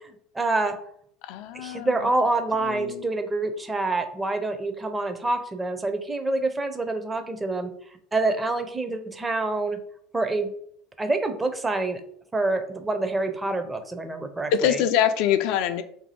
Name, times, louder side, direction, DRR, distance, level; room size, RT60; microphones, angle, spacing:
voice 1, 0.3-0.8 1.5-7.7 8.1-9.8 10.1-10.5 11.0-12.0 12.3-14.8, right 2 dB, 15° right, 8 dB, 0.6 m, -26 dB
voice 2, 1.3-1.9 2.7-3.0 14.5-15.8, left 9 dB, 65° left, 10 dB, 0.3 m, -24 dB
2.7 x 2.6 x 4.1 m, 0.67 s
hypercardioid pair, 75°, 0 cm